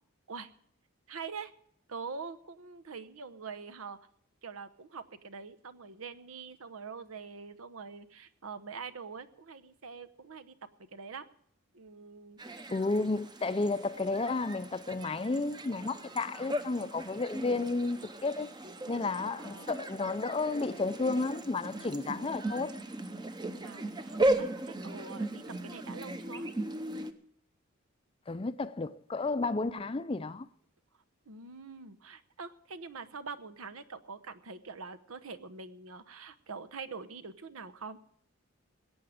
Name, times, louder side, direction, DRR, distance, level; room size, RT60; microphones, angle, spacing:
voice 1, 1.1-1.5 1.9-4.0 4.4-10.6 10.9-11.3 11.7-12.7 19.3-19.9 22.1-22.6 23.6-26.5 31.3-38.0, right 5 dB, 85° right, 0.9 m, -45 dB
sound 1, 12.4-27.1, right 1 dB, 20° right, 0.7 m, -37 dB
voice 2, 12.7-18.5 18.9-22.7 28.3-30.5, left 3 dB, 25° left, 0.5 m, -32 dB
21.0 x 8.8 x 5.0 m
head